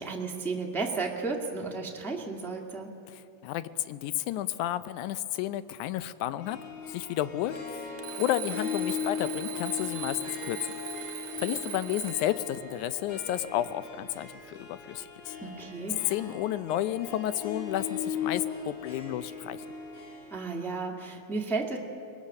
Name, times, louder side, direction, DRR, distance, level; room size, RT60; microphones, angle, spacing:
voice 1, 0.0-2.9 15.4-16.0 20.3-21.8, right 3 dB, ahead, 0 dB, 0.8 m, -33 dB
voice 2, 3.1-6.6 6.9-7.9 8.2-10.6 11.0-11.1 11.4-15.3 16.1-19.6, left 13 dB, 85° left, 14 dB, 2.1 m, -32 dB
Harp, 6.4-20.4, left 7 dB, 55° left, 4.1 m, -38 dB
Alarm, 8.0-12.4, right 11 dB, 75° right, 1.2 m, -40 dB
24.0 x 19.5 x 6.5 m, 2.6 s
omnidirectional pair, 3.4 m